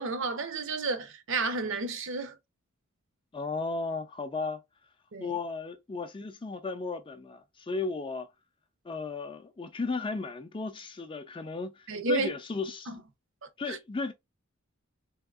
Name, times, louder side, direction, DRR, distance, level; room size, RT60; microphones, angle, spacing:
voice 1, 0.0-2.4 5.1-5.4 11.9-12.3 12.9-13.0 13.4-13.8, right 3 dB, 60° right, 0.7 m, -32 dB
voice 2, 3.3-4.6 5.2-8.3 8.8-12.9 13.6-14.1, left 4 dB, 25° left, 0.4 m, -35 dB
3.5 x 2.8 x 2.3 m
head